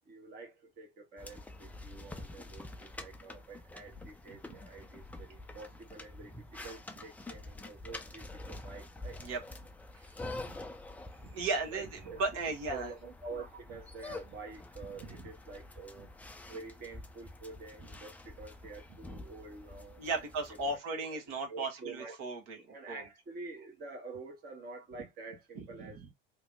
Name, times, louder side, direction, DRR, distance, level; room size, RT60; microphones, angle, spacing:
voice 1, 0.1-9.2 11.7-12.2 12.7-16.1 16.5-20.0 20.6-21.2 21.5-22.2 22.7-26.1, right 3 dB, 35° right, 0.9 m, -48 dB
sound 1, 1.2-20.8, left 2 dB, 5° left, 0.4 m, -47 dB
voice 2, 11.2-12.9 15.0-15.3 17.8-17.9 20.0-23.0 25.5-26.1, right 3 dB, 55° right, 1.1 m, -36 dB
2.9 x 2.1 x 3.6 m
figure-of-eight pair, 75°, 29 cm